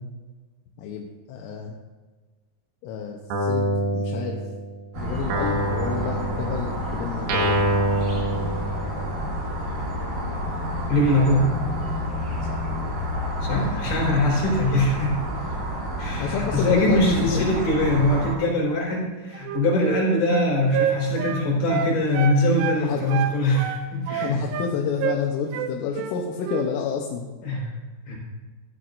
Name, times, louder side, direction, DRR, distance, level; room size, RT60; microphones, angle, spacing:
voice 1, 0.8-1.8 2.8-4.4 5.0-7.6 12.4-12.6 13.5-13.9 16.2-17.5 22.8-23.0 24.1-27.3, left 6 dB, 85° left, 0 dB, 3.4 m, -29 dB
Guitar, 3.3-4.8 5.3-9.2, right 1 dB, 65° right, 3.0 m, -26 dB
sound 1, 4.9-18.3, equal, 35° right, 3.9 m, -29 dB
voice 2, 10.9-11.5 13.4-15.2 16.0-24.4 27.4-27.6 28.1-28.2, left 1 dB, 55° left, -4 dB, 6.0 m, -22 dB
Wind instrument woodwind instrument, 19.3-22.8 23.1-24.7 25.0-25.2 25.5-26.2 26.4-26.7, right 9 dB, 85° right, 3.1 m, -28 dB
15.5 x 12.0 x 2.6 m, 1.3 s
omnidirectional pair, 5.6 m